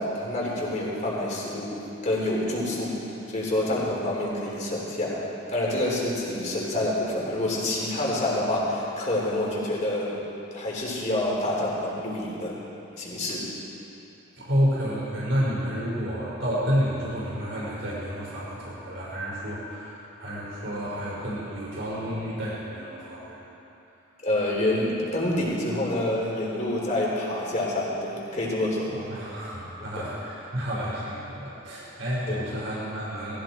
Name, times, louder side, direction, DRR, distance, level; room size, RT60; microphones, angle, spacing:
voice 1, 0.0-10.2 10.5-12.6 13.0-13.5 24.2-28.9 30.0-30.1 32.3-32.4, left 1 dB, 40° left, -4 dB, 3.6 m, -27 dB
voice 2, 14.4-23.5 28.9-33.4, equal, 70° right, -7 dB, 4.7 m, -30 dB
19.0 x 15.0 x 4.5 m, 2.8 s
head